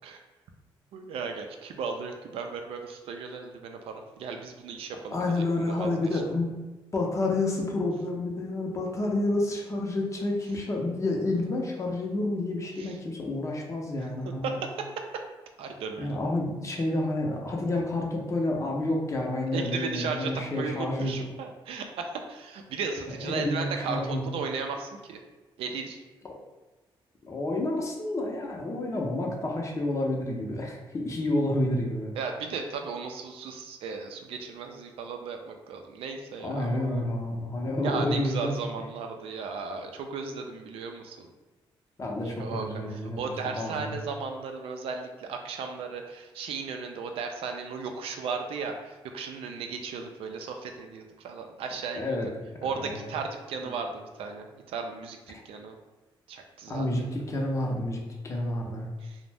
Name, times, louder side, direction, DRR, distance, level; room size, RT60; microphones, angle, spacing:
voice 1, 0.9-6.2 12.8-13.0 14.4-14.9 15.6-16.1 19.5-25.2 25.6-26.0 32.2-37.0 37.8-41.3 42.3-52.2 52.6-55.7 56.3-56.9 59.0-59.2, right 5 dB, 85° right, 4 dB, 0.4 m, -36 dB
voice 2, 5.1-6.5 6.9-14.6 16.0-21.1 23.1-24.2 27.2-32.1 36.4-38.6 42.0-44.0 52.0-52.5 52.7-53.1 53.6-53.7 56.7-58.9, left 2 dB, 35° left, 0 dB, 0.5 m, -29 dB
2.5 x 2.0 x 3.3 m, 1.2 s
cardioid pair, 100°, 9 cm